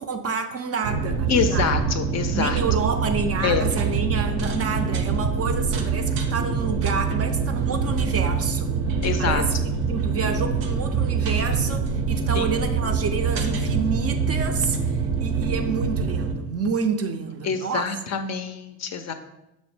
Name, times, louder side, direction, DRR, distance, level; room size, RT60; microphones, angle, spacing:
voice 1, 0.0-1.7 2.3-8.7 9.2-17.9, right 5 dB, 35° right, 6 dB, 0.4 m, -29 dB
sound 1, 0.8-16.3, right 5 dB, 80° right, 0.6 m, -25 dB
voice 2, 1.3-2.6 3.4-3.7 9.0-9.4 12.3-12.5 17.4-19.1, left 6 dB, 40° left, 8 dB, 0.4 m, -25 dB
6.0 x 2.0 x 3.3 m, 0.91 s
hypercardioid pair, 55°, 43 cm